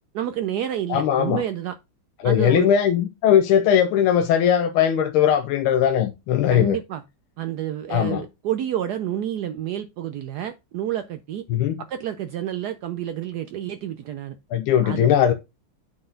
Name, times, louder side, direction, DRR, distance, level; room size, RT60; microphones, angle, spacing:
voice 1, 0.1-1.8 2.2-2.7 6.5-7.0 7.4-11.4 11.8-14.4 14.8-15.1, right 11 dB, 85° right, 0.8 m, -29 dB
voice 2, 0.9-1.4 2.2-6.8 7.9-8.2 11.5-11.8 14.5-15.3, left 9 dB, 90° left, 1.5 m, -19 dB
9.4 x 4.0 x 3.8 m
omnidirectional pair, 2.3 m